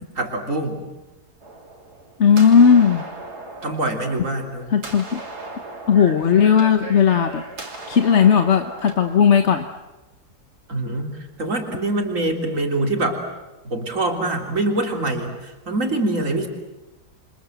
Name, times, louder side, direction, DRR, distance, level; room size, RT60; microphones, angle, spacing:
voice 1, 0.2-0.9 3.6-4.7 10.7-13.2 13.6-16.5, right 2 dB, 50° right, 3 dB, 3.9 m, -24 dB
sound 1, 1.4-9.2, right 2 dB, 70° right, 3.7 m, -37 dB
voice 2, 2.2-3.0 4.7-5.2 5.9-7.4 7.9-9.6, left 7 dB, 50° left, 7 dB, 1.2 m, -16 dB
28.0 x 25.0 x 7.9 m, 1.1 s
omnidirectional pair, 1.7 m